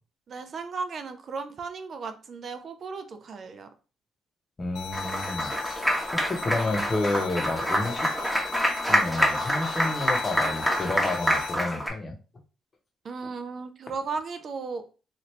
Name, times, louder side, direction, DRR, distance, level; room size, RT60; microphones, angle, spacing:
voice 1, 0.3-3.7 13.0-14.8, right 4 dB, 55° right, 8 dB, 0.4 m, -35 dB
voice 2, 4.6-8.1 8.8-12.1, left 2 dB, 30° left, 3 dB, 0.8 m, -31 dB
sound 1, 4.7-11.5, left 7 dB, 80° left, 0.4 m, -39 dB
Applause, 4.9-11.9, equal, ahead, 0.9 m, -27 dB
2.9 x 2.5 x 3.1 m, 0.34 s
cardioid pair, 90°, 0 cm